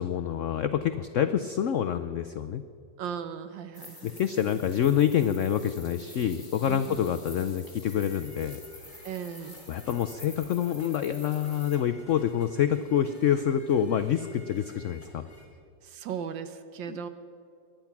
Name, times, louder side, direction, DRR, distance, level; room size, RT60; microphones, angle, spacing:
voice 1, 0.0-2.6 4.2-8.6 9.7-15.2 16.9-17.0, left 9 dB, 85° left, 10 dB, 0.6 m, -27 dB
voice 2, 3.0-4.2 6.7-7.1 9.0-9.6 15.8-17.1, right 7 dB, 90° right, 10 dB, 1.6 m, -37 dB
sound 1, 3.7-11.8, left 2 dB, 15° left, 2.6 m, -49 dB
sound 2, 7.8-15.5, equal, 5° right, 2.5 m, -54 dB
23.5 x 10.5 x 5.9 m, 2.4 s
omnidirectional pair, 2.0 m